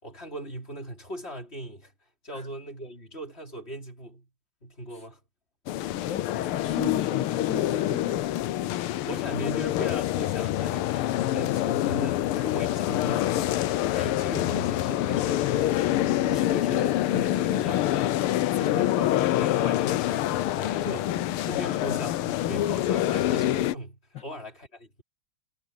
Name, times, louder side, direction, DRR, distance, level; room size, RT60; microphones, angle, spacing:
voice 1, 0.0-1.9 2.2-4.3 4.6-5.2 9.0-15.9 16.2-18.2 18.5-25.0, equal, 25° left, 5.0 m, -39 dB
sound 1, 5.7-23.7, left 13 dB, 80° left, 1.6 m, -26 dB
voice 2, 6.1-8.3 24.1-24.2, left 4 dB, 55° left, 3.0 m, -37 dB
omnidirectional pair, 2.4 m